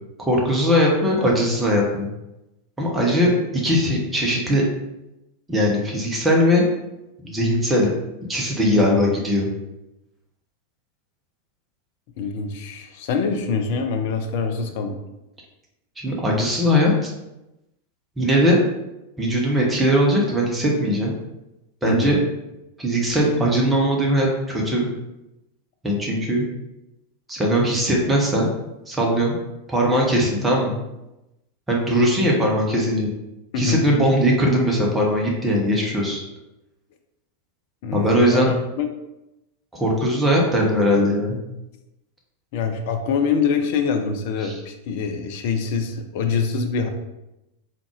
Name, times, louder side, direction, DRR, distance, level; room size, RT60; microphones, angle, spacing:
voice 1, 0.2-2.1 2.8-3.3 3.6-4.6 5.5-6.7 7.2-7.9 8.3-9.5 16.0-17.1 18.2-18.6 19.2-21.1 21.8-22.2 22.8-24.9 25.8-26.4 27.3-28.5 28.9-29.4 29.7-30.8 31.7-33.1 33.6-36.2 37.9-38.5 39.7-41.4 44.4-44.5, equal, 10° right, -2 dB, 0.9 m, -20 dB
voice 2, 8.7-9.1 12.2-15.0 21.8-22.2 33.5-33.9 37.8-38.9 42.5-46.9, left 5 dB, 50° left, 6 dB, 0.4 m, -24 dB
3.7 x 2.4 x 3.1 m, 0.93 s
figure-of-eight pair, 90°, 0 cm